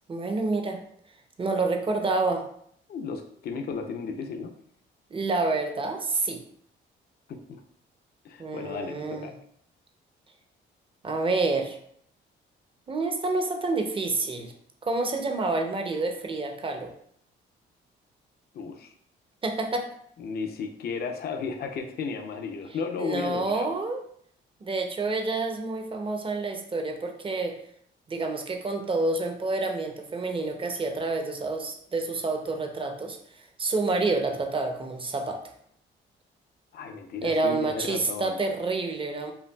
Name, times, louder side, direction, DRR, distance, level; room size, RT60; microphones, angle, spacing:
voice 1, 0.1-0.8 1.4-2.5 5.1-6.4 8.4-9.3 11.0-11.8 12.9-14.5 14.8-16.9 19.4-19.9 23.0-24.0 24.6-27.6 28.1-35.5 37.2-39.3, right 3 dB, 25° right, 5 dB, 0.6 m, -28 dB
voice 2, 2.9-4.5 7.3-7.4 8.2-9.3 18.5-18.9 20.2-23.7 36.7-38.4, left 5 dB, 55° left, 4 dB, 0.5 m, -34 dB
5.6 x 2.3 x 2.2 m, 0.67 s
cardioid pair, 90°, 20 cm